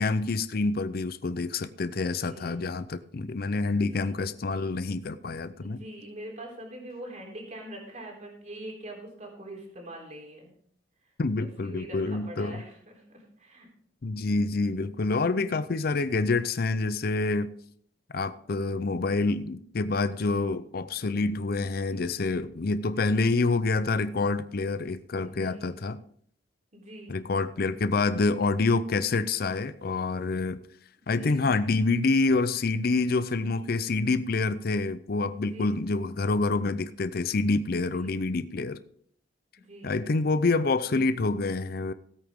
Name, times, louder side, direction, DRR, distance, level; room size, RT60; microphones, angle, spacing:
voice 1, 0.0-5.8 11.2-12.6 14.0-17.5 18.1-26.0 27.1-30.6 31.1-38.8 39.8-41.9, left 3 dB, 55° left, 13 dB, 0.5 m, -27 dB
voice 2, 2.1-2.6 4.0-4.1 5.6-10.5 11.4-13.7 25.2-25.7 26.7-27.2 31.2-31.5 35.5-35.8 37.9-38.2 39.6-40.0, right 1 dB, 40° right, 0 dB, 3.5 m, -43 dB
16.5 x 8.7 x 3.6 m, 0.62 s
head